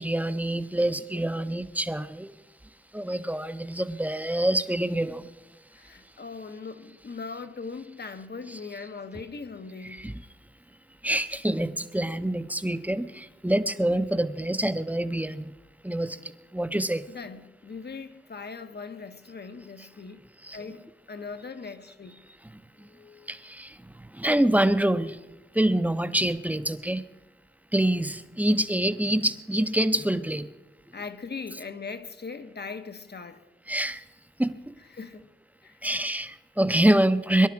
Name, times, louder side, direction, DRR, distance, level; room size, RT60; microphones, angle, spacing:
voice 1, 0.0-2.3 2.9-5.2 9.8-10.2 11.0-15.5 15.8-16.2 16.5-17.0 20.4-20.6 22.8-22.9 23.3-23.8 24.1-25.2 25.5-27.0 27.7-30.5 33.7-34.0 34.4-34.7 35.8-37.5, right 1 dB, 10° right, 0.7 m, -26 dB
voice 2, 5.7-10.1 17.1-20.2 20.5-22.2 22.8-23.3 30.9-33.4 34.9-35.3 35.6-35.9, left 4 dB, 60° left, 1.1 m, -40 dB
23.0 x 11.5 x 4.7 m
wide cardioid pair, 100°, 19 cm